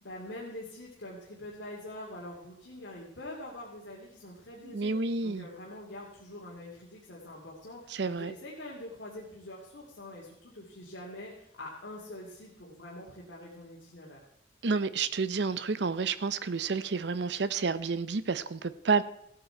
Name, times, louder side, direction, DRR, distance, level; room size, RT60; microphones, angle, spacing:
voice 1, 0.0-4.9 5.2-14.2, left 1 dB, 75° left, -4 dB, 2.4 m, -44 dB
voice 2, 4.6-5.5 7.9-8.3 14.6-19.0, right 4 dB, 65° right, 14 dB, 0.6 m, -30 dB
15.5 x 8.9 x 4.5 m, 0.78 s
head